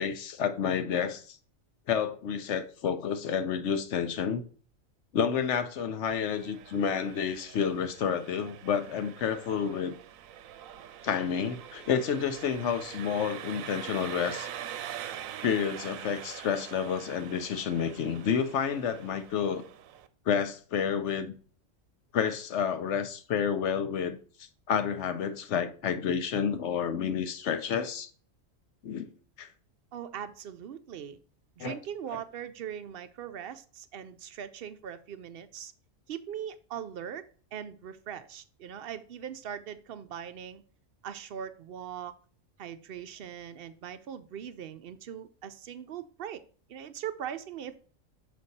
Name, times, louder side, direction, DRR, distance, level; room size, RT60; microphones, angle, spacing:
voice 1, 0.0-1.4 1.9-4.4 5.1-10.0 11.0-14.5 15.4-19.6 20.3-21.3 22.1-24.2 24.7-28.1 28.8-29.1 29.4-29.5 31.6-31.7, left 7 dB, 65° left, 0.9 m, -30 dB
Engine, 6.1-20.1, right 10 dB, 90° right, 1.0 m, -44 dB
voice 2, 29.9-31.2 31.6-35.7 36.1-37.2 37.5-40.6 41.0-42.1 42.6-46.4 46.7-47.8, right 9 dB, 60° right, 0.6 m, -40 dB
6.5 x 5.2 x 4.1 m
omnidirectional pair, 1.4 m